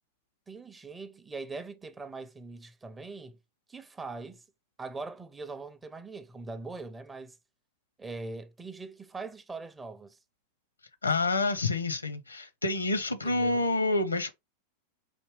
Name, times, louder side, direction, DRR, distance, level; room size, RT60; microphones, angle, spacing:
voice 1, 0.5-3.4 3.7-4.4 4.8-7.4 8.0-10.2 13.2-13.7, right 3 dB, 15° right, 0.5 m, -41 dB
voice 2, 11.0-14.3, left 2 dB, 80° left, 0.7 m, -28 dB
5.0 x 2.7 x 3.1 m
figure-of-eight pair, 90°, 0 cm